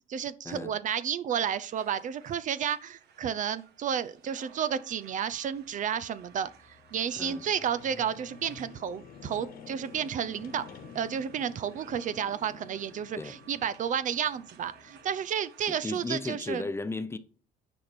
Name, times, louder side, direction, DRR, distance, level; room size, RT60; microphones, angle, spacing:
voice 1, 0.1-6.5 6.9-10.6 10.9-16.7, right 8 dB, 50° right, 0.5 m, -31 dB
sound 1, 1.6-16.3, right 8 dB, 70° right, 1.5 m, -57 dB
sound 2, 5.5-15.3, left 7 dB, 60° left, 1.3 m, -51 dB
voice 2, 15.7-17.2, left 3 dB, 15° left, 0.8 m, -35 dB
9.8 x 4.3 x 5.9 m
cardioid pair, 110°, 17 cm